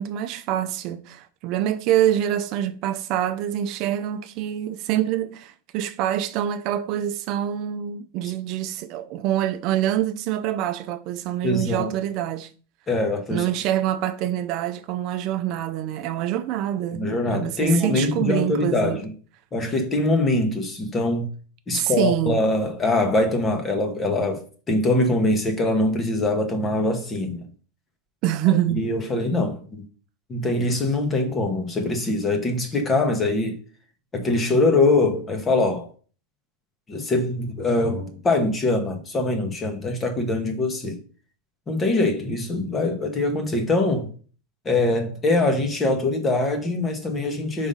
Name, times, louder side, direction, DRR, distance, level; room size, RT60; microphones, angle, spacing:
voice 1, 0.0-12.5 13.3-19.0 21.7-22.4 28.2-28.8, right 11 dB, 45° right, 0.5 m, -25 dB
voice 2, 11.4-11.9 12.9-13.4 16.9-19.1 19.5-21.3 21.7-27.5 28.7-29.8 30.3-33.6 34.1-35.9 36.9-41.0 41.7-44.1 44.6-47.7, left 2 dB, 20° left, 1.3 m, -23 dB
5.3 x 3.5 x 5.5 m
supercardioid pair, 145°, 0 cm